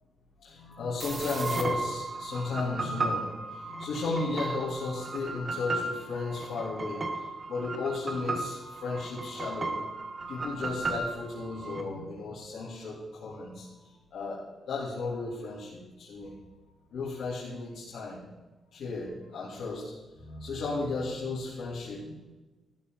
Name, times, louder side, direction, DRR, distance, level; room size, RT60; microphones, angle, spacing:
voice 1, 0.4-9.8 10.3-14.4 14.7-16.4 16.9-18.2 18.7-22.3, left 3 dB, 70° left, -8 dB, 3.3 m, -35 dB
sound 1, 1.0-11.8, right 3 dB, 25° right, 1.4 m, -35 dB
14.0 x 13.0 x 4.0 m, 1.2 s
wide cardioid pair, 165°, 0 cm